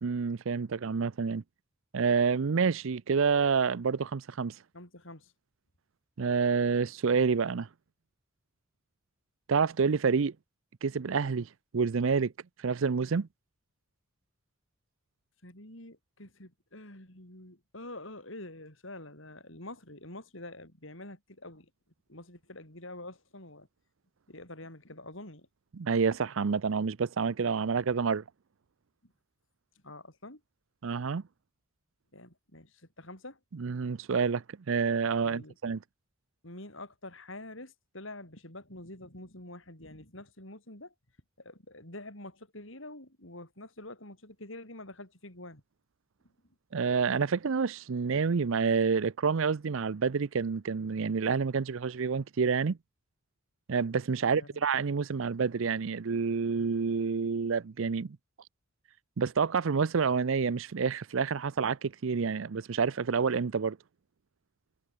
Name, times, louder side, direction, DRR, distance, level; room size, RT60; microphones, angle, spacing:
voice 1, 0.0-1.4 1.9-4.6 6.2-7.7 9.5-10.3 10.8-12.3 12.6-13.3 25.8-28.2 30.8-31.2 33.6-35.8 46.7-52.8 53.7-58.2 59.2-63.8, right 5 dB, 65° right, 0.5 m, -28 dB
voice 2, 4.7-5.3 15.4-21.7 22.1-23.7 24.3-25.5 29.8-30.4 32.1-33.4 35.2-35.5 36.4-40.9 41.4-45.6 54.2-54.7, left 2 dB, 60° left, 6.7 m, -46 dB
head